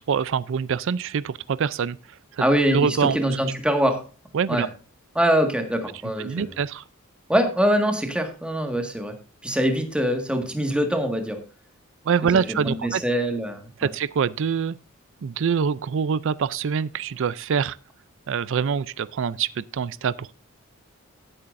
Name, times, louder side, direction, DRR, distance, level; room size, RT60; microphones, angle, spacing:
voice 1, 0.1-2.0 2.3-2.4 2.7-3.2 4.3-4.7 6.2-6.8 12.1-13.0 13.8-14.8 15.2-17.8 18.3-20.3, right 6 dB, 65° right, 0.4 m, -25 dB
voice 2, 2.4-4.0 4.5-4.7 5.1-6.5 7.3-9.2 9.4-11.4 12.5-13.9, equal, 5° right, 1.7 m, -23 dB
16.5 x 8.6 x 2.6 m
head